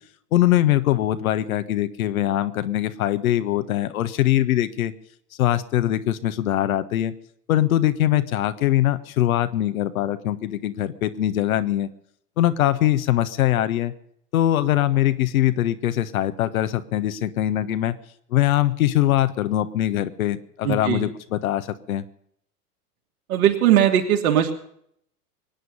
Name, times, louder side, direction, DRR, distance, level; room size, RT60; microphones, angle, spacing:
voice 1, 0.3-4.9 5.4-7.1 7.5-11.9 12.4-13.9 14.3-18.0 18.3-22.0, left 13 dB, 60° left, 11 dB, 1.3 m, -22 dB
voice 2, 20.6-21.1 23.3-24.5, right 10 dB, 60° right, 4 dB, 3.0 m, -19 dB
24.0 x 9.6 x 5.4 m, 0.68 s
figure-of-eight pair, 95°, 47 cm